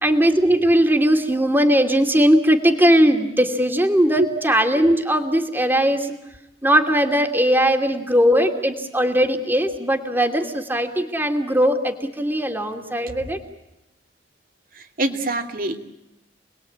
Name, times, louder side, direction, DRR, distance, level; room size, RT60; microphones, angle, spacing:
voice 1, 0.0-6.2 6.6-13.4, equal, 10° right, 4 dB, 2.8 m, -19 dB
voice 2, 14.8-15.8, right 2 dB, 55° right, 5 dB, 2.6 m, -24 dB
29.5 x 21.0 x 8.7 m, 0.92 s
head